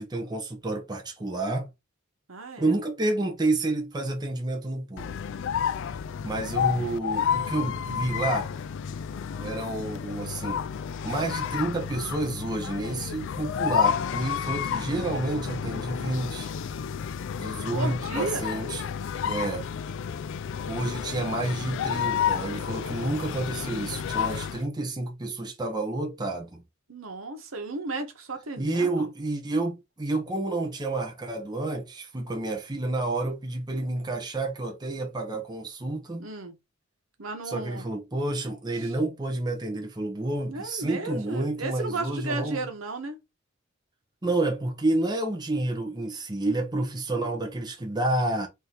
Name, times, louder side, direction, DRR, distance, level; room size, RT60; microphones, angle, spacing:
voice 1, 0.0-1.7 2.6-5.2 6.2-8.5 9.4-10.6 11.0-16.5 17.4-18.8 19.2-19.7 20.7-26.6 28.6-36.3 37.5-42.6 44.2-48.5, right 2 dB, 20° right, 0.7 m, -29 dB
voice 2, 2.3-2.8 6.2-6.9 17.7-18.4 26.9-29.1 36.2-36.6 37.2-37.8 38.8-38.9 40.5-43.2, right 2 dB, 75° right, 1.1 m, -34 dB
sound 1, 5.0-24.6, left 8 dB, 65° left, 0.4 m, -31 dB
4.4 x 2.7 x 3.4 m
head